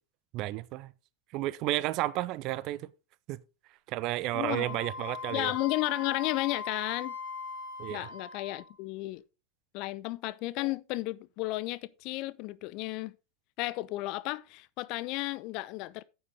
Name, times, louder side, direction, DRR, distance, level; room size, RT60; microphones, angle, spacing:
voice 1, 0.3-0.9 1.3-2.8 3.3-3.4 3.9-5.5 7.8-8.1, right 16 dB, 40° right, 0.5 m, -32 dB
voice 2, 4.3-4.7 5.3-7.2 7.9-9.2 9.7-13.1 13.6-16.0, left 19 dB, 40° left, 0.5 m, -33 dB
Wind instrument woodwind instrument, 4.6-8.8, left 4 dB, 65° left, 3.9 m, -40 dB
9.7 x 7.9 x 3.8 m
figure-of-eight pair, 90°, 0 cm